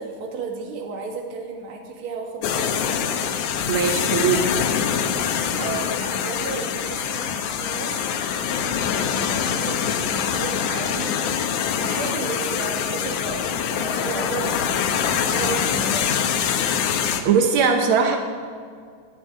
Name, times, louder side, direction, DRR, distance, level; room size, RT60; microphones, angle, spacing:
voice 1, 0.0-3.1 5.6-8.0 8.3-11.1 11.8-14.9 15.2-16.2, right 4 dB, 50° right, 0 dB, 2.3 m, -33 dB
sound 1, 2.4-17.2, left 8 dB, 85° left, 2.4 m, -24 dB
voice 2, 3.7-4.5 17.2-18.2, right 6 dB, 80° right, 4 dB, 1.1 m, -19 dB
19.0 x 12.0 x 3.7 m, 2.1 s
omnidirectional pair, 3.5 m